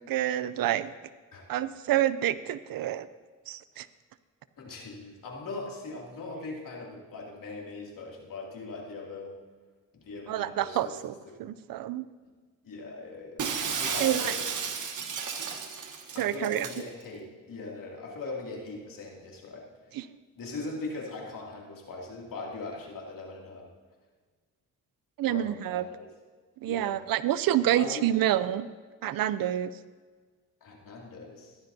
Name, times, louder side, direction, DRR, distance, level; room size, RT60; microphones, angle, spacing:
voice 1, 0.1-0.9 1.5-3.1 3.5-3.9 10.3-11.1 11.4-12.0 14.0-14.3 16.2-16.7 19.9-20.1 25.2-25.8 26.6-28.7 29.0-29.7, right 12 dB, 75° right, 15 dB, 0.6 m, -28 dB
voice 2, 4.6-9.4 9.9-11.5 12.2-12.3 12.6-14.4 16.1-19.7 20.3-23.7 25.3-26.1 26.6-27.0 27.7-28.0 30.6-31.6, left 3 dB, 70° left, -1 dB, 2.7 m, -40 dB
Shatter, 13.4-16.8, right 6 dB, 60° right, 1.2 m, -33 dB
15.0 x 12.5 x 2.8 m, 1.4 s
cardioid pair, 65°, 35 cm